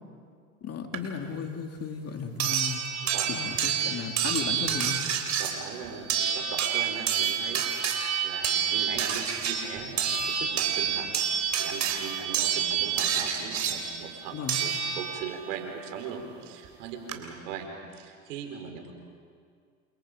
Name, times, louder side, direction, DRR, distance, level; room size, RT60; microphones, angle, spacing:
voice 1, 0.6-2.8 3.3-5.0 14.3-14.6, left 6 dB, 40° left, 4 dB, 2.9 m, -35 dB
sound 1, 0.9-1.0 2.4-15.4 16.7-16.8 17.1-17.2, right 8 dB, 50° right, 3.6 m, -28 dB
voice 2, 3.0-3.4 5.4-11.2 11.5-18.9, right 6 dB, 80° right, 3 dB, 4.6 m, -39 dB
29.5 x 27.5 x 5.2 m, 2.2 s
hypercardioid pair, 90°, 37 cm